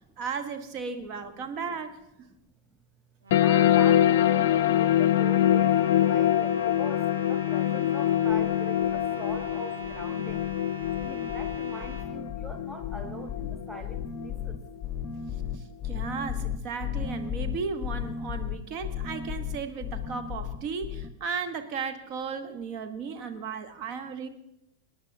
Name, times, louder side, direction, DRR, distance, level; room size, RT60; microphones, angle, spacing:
voice 1, 0.2-2.0 15.5-24.3, right 5 dB, 40° right, 8 dB, 1.1 m, -35 dB
sound 1, 3.2-12.1, right 3 dB, 65° right, 2.3 m, -43 dB
sound 2, 3.3-14.3, left 11 dB, 55° left, 0.4 m, -24 dB
voice 2, 3.4-7.0 7.3-10.4 11.0-14.5, right 2 dB, 10° right, 7 dB, 0.7 m, -42 dB
sound 3, 8.3-8.5 8.8-9.6 9.8-10.6 10.8-21.1, left 8 dB, 15° left, 1.1 m, -35 dB
25.5 x 9.9 x 2.8 m, 0.84 s
figure-of-eight pair, 90°, 0 cm